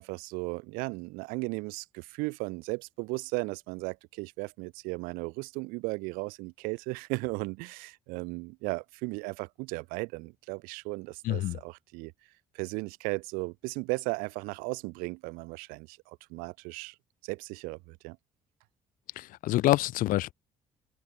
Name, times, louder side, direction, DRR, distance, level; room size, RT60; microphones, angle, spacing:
voice 1, 0.0-12.1 12.5-17.0 17.2-18.2, right 27 dB, 85° right, 3.8 m, -36 dB
voice 2, 11.2-11.6 19.2-20.3, left 16 dB, 75° left, 2.6 m, -26 dB
open air
hypercardioid pair, 60°, 14 cm